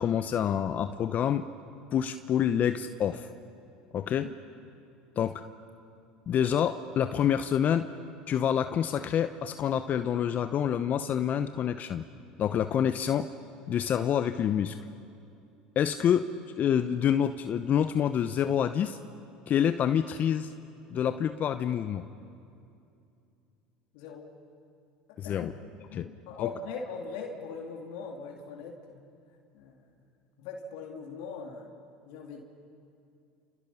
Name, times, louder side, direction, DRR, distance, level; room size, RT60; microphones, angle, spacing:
voice 1, 0.0-1.4 1.9-3.3 3.9-4.3 5.2-5.4 6.3-7.9 8.3-12.0 12.4-13.3 13.7-14.8 15.8-16.3 16.6-19.0 19.5-20.5 20.9-22.0 25.2-25.5 25.9-26.1 26.4-26.5, left 9 dB, 45° left, 10 dB, 0.8 m, -27 dB
voice 2, 23.9-24.3 25.2-25.5 25.9-29.0 29.5-29.7 30.4-31.7 32.1-32.4, left 5 dB, 70° left, 1 dB, 2.7 m, -40 dB
29.5 x 29.0 x 5.7 m, 2.6 s
hypercardioid pair, 80°, 4 cm